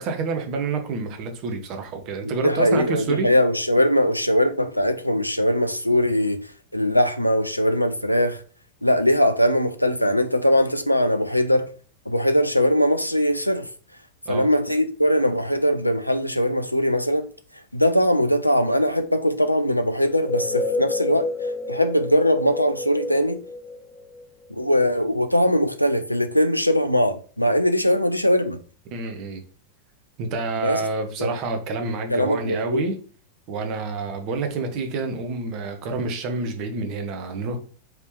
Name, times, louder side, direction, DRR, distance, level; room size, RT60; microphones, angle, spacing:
voice 1, 0.0-3.3 14.3-14.5 28.9-29.4 30.2-33.0 33.5-37.6, right 4 dB, 40° right, 1.0 m, -28 dB
voice 2, 2.2-6.4 6.7-8.4 8.8-11.7 12.1-13.7 14.3-17.3 17.7-21.3 21.7-23.4 24.5-28.6 30.6-30.8 31.2-31.3 32.1-32.9, equal, 90° left, 0.4 m, -21 dB
sound 1, 20.1-24.7, left 3 dB, 20° left, 0.5 m, -30 dB
4.8 x 3.2 x 3.1 m
figure-of-eight pair, 90°, 0 cm